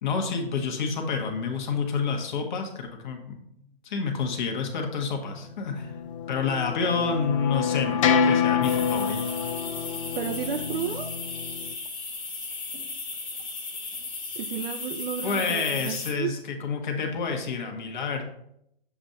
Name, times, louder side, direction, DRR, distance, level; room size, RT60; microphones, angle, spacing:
voice 1, 0.0-3.4 3.8-5.9 6.3-9.2 15.2-18.2, left 5 dB, 50° left, 3 dB, 1.2 m, -29 dB
sound 1, 5.8-11.7, left 7 dB, 35° left, 0.4 m, -27 dB
sound 2, 8.6-16.1, left 3 dB, 15° left, 0.9 m, -36 dB
voice 2, 10.2-11.1 14.4-16.4, right 8 dB, 65° right, 6 dB, 0.5 m, -32 dB
7.0 x 2.6 x 5.6 m, 0.77 s
figure-of-eight pair, 125°, 31 cm